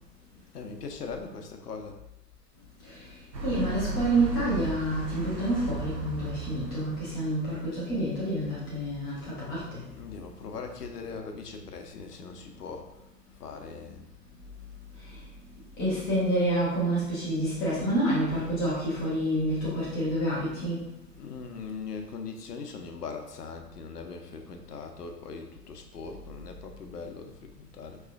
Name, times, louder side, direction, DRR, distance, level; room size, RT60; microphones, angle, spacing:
voice 1, 0.5-2.0 9.9-12.9 13.4-14.0 21.2-28.0, left 5 dB, 70° left, 4 dB, 0.8 m, -40 dB
sound 1, 3.3-8.4, right 4 dB, 90° right, 0.7 m, -36 dB
voice 2, 3.4-9.8 15.8-20.9, right 1 dB, 10° left, -8 dB, 0.4 m, -28 dB
5.4 x 3.0 x 2.4 m, 0.86 s
figure-of-eight pair, 105°, 49 cm